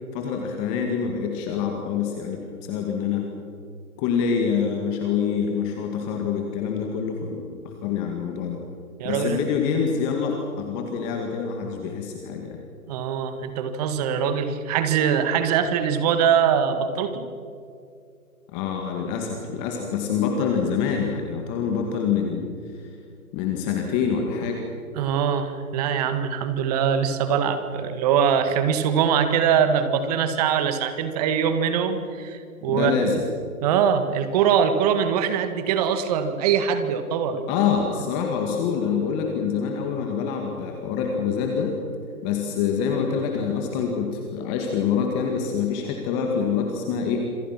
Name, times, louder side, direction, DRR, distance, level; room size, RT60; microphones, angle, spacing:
voice 1, 0.1-3.3 4.0-8.6 9.0-12.6 18.5-22.8 23.3-24.6 32.7-33.3 37.5-41.8 42.2-47.3, left 6 dB, 20° left, 2 dB, 2.2 m, -26 dB
voice 2, 9.0-9.4 12.9-17.3 25.0-33.1 33.6-37.4, right 7 dB, 25° right, 9 dB, 1.8 m, -22 dB
27.0 x 26.0 x 6.1 m, 2.4 s
hypercardioid pair, 145°, 44 cm